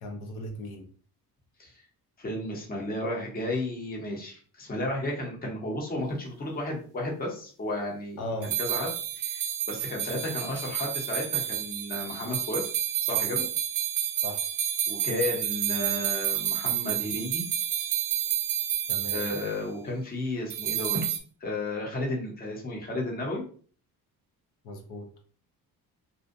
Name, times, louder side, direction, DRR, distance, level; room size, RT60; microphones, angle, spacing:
voice 1, 0.0-0.9 8.2-8.5 14.2-14.5 18.9-19.3 24.6-25.2, left 1 dB, 80° left, 3 dB, 0.6 m, -37 dB
voice 2, 2.2-8.2 8.4-12.6 13.1-13.4 14.9-17.4 19.1-23.4, left 1 dB, 25° left, -1 dB, 0.7 m, -33 dB
sound 1, 8.4-19.5 20.5-21.2, right 10 dB, 55° right, 0.5 m, -30 dB
2.6 x 2.1 x 2.5 m, 0.44 s
cardioid pair, 140°, 37 cm